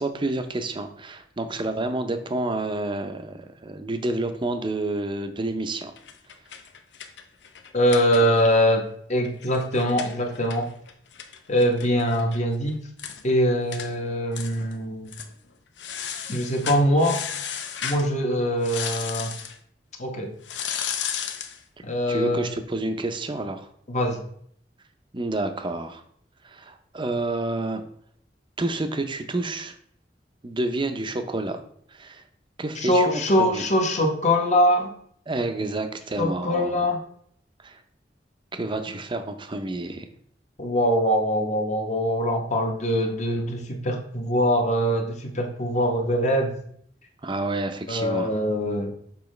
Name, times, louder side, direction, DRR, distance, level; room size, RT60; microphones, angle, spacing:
voice 1, 0.0-5.9 22.1-23.7 25.1-26.0 26.4-27.8 28.6-29.7 30.4-31.6 31.9-32.2 32.6-33.2 33.5-33.6 35.3-36.7 37.6-37.8 38.5-40.1 47.2-48.4, right 2 dB, 30° right, 8 dB, 0.6 m, -29 dB
sound 1, 6.0-8.6 8.9-9.0 9.2-12.4 12.7-12.8 13.0-13.2 13.7-13.9 14.3-14.7 15.1-15.3 15.8-18.1 18.6-19.6 20.4-21.6, left 8 dB, 85° left, 0.7 m, -34 dB
voice 2, 7.7-10.7 11.5-12.8 13.2-15.1 16.3-17.2 17.8-19.3 20.0-20.3 21.8-22.5 23.9-24.2 32.8-34.9 36.2-37.0 40.6-46.5 47.9-48.9, equal, 40° left, 2 dB, 1.0 m, -23 dB
7.0 x 4.8 x 3.2 m, 0.65 s
head